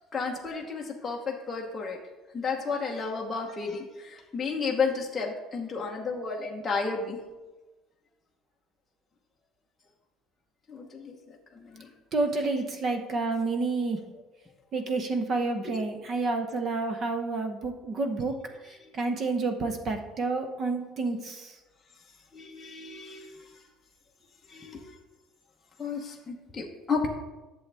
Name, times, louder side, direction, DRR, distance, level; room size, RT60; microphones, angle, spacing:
voice 1, 0.1-2.0 2.3-7.2 10.7-11.9 15.6-15.8 18.8-18.9 22.3-23.4 24.5-24.8 25.8-27.1, left 4 dB, 10° left, -2 dB, 1.0 m, -32 dB
voice 2, 12.1-14.0 14.7-18.4 18.9-21.5, right 3 dB, 30° right, 6 dB, 0.8 m, -29 dB
11.0 x 7.1 x 3.4 m, 1.1 s
cardioid pair, 175°, 0 cm